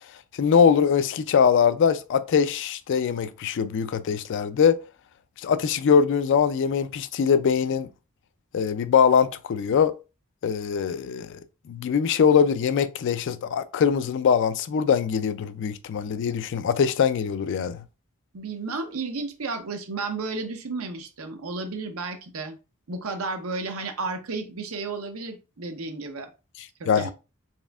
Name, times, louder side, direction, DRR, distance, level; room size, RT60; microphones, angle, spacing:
voice 1, 0.4-4.8 5.4-7.9 8.5-9.9 10.4-11.4 11.7-17.8 26.9-27.1, left 6 dB, 60° left, 0.3 m, -22 dB
voice 2, 18.3-22.6 22.9-26.3 26.8-27.1, right 3 dB, 75° right, 0.8 m, -32 dB
4.1 x 3.5 x 2.3 m
head